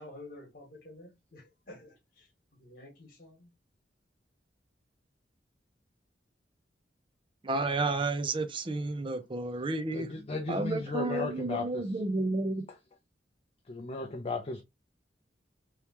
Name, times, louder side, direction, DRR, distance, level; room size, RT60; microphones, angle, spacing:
voice 1, 0.0-2.3 2.6-3.5, left 1 dB, 55° left, 1.7 m, -50 dB
voice 2, 7.4-10.1 10.5-12.6, right 2 dB, 30° right, 0.5 m, -31 dB
voice 3, 9.9-11.9 13.7-14.6, left 3 dB, 35° left, 0.5 m, -35 dB
3.5 x 3.1 x 2.9 m
head